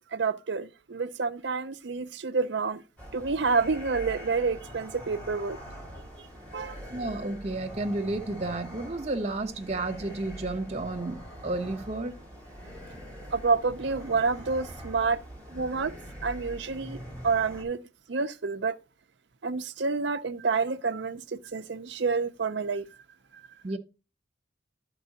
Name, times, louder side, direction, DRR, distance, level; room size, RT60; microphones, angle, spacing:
voice 1, 0.1-2.8 3.1-5.6 6.5-6.8 13.3-15.2 15.5-15.9 16.2-17.0 17.2-17.8 18.1-18.8 19.4-22.8, right 4 dB, 65° right, 0.6 m, -28 dB
sound 1, 3.0-17.6, equal, 10° left, 2.8 m, -43 dB
voice 2, 6.9-12.2 23.6-23.8, right 2 dB, 35° right, 1.1 m, -32 dB
11.0 x 4.6 x 4.0 m
head